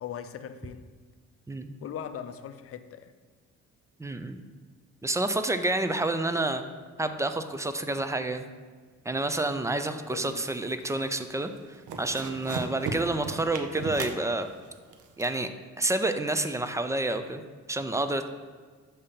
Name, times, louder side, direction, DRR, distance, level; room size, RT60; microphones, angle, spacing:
voice 1, 0.0-0.8 1.8-3.1 9.7-9.8 10.1-10.5, left 9 dB, 50° left, 10 dB, 0.5 m, -39 dB
voice 2, 4.0-4.4 5.0-6.6 7.0-8.5 9.1-11.5 12.0-14.5 15.2-15.5 15.8-17.4 17.7-18.3, right 2 dB, 10° right, 9 dB, 0.3 m, -29 dB
sound 1, 10.2-10.8 11.2-11.5 11.7-15.3, right 4 dB, 80° right, 0.6 m, -36 dB
6.7 x 2.8 x 5.1 m, 1.5 s
cardioid pair, 90°, 30 cm